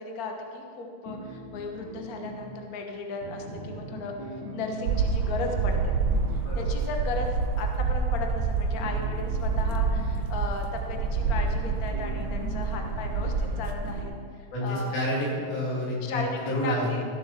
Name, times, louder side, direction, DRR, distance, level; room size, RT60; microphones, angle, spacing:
voice 1, 0.0-6.0 6.3-7.3 7.6-14.1 14.4-15.0 16.0-17.0, left 3 dB, 60° left, 3 dB, 0.9 m, -36 dB
sound 1, 1.1-2.5 3.2-6.4 8.8-10.2 10.9-14.1, equal, 20° left, 2.7 m, -40 dB
sound 2, 4.9-14.0, right 4 dB, 75° right, 1.7 m, -27 dB
voice 2, 14.5-16.9, equal, 90° left, -4 dB, 4.2 m, -29 dB
14.5 x 6.9 x 5.8 m, 2.2 s
omnidirectional pair, 3.4 m